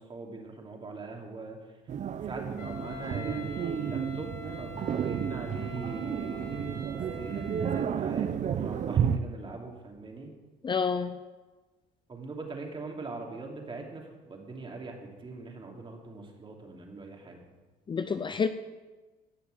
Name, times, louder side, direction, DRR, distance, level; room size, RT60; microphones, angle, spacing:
voice 1, 0.0-1.6 2.2-10.3 12.1-17.4, right 3 dB, 30° right, 1 dB, 3.0 m, -42 dB
sound 1, 1.9-9.2, right 8 dB, 45° right, 0.7 m, -31 dB
Wind instrument woodwind instrument, 2.6-7.9, left 4 dB, 70° left, 2.8 m, -45 dB
voice 2, 10.6-11.2 17.9-18.5, left 5 dB, 30° left, 10 dB, 0.6 m, -28 dB
17.0 x 6.7 x 8.0 m, 1.3 s
cardioid pair, 110°, 17 cm